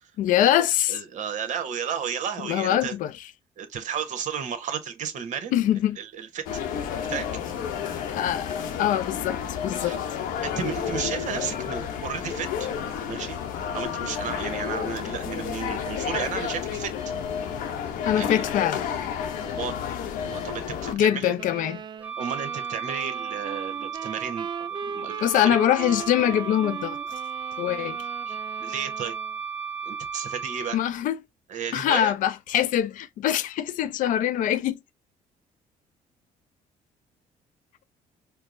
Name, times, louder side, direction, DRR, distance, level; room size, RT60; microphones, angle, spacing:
voice 1, 0.2-1.0 2.4-3.1 5.5-6.0 8.1-10.0 18.1-18.9 20.9-21.8 25.2-27.0 27.6-28.0 30.7-31.2 31.7-34.8, left 11 dB, 70° left, 0.4 m, -23 dB
voice 2, 0.9-2.9 3.6-5.7 6.0-6.4 7.1-7.3 9.8-10.0 10.4-12.7 13.1-13.4 13.7-16.9 18.1-18.4 19.4-19.7 20.2-21.3 22.2-25.6 28.3-29.1 29.9-30.8 31.5-32.1, right 7 dB, 60° right, 0.9 m, -33 dB
sound 1, 6.5-20.9, left 8 dB, 85° left, 0.8 m, -31 dB
sound 2, 21.4-29.4, right 6 dB, 35° right, 0.3 m, -39 dB
Wind instrument woodwind instrument, 22.0-30.8, right 6 dB, 10° right, 0.7 m, -34 dB
4.5 x 2.0 x 2.5 m
cardioid pair, 90°, 14 cm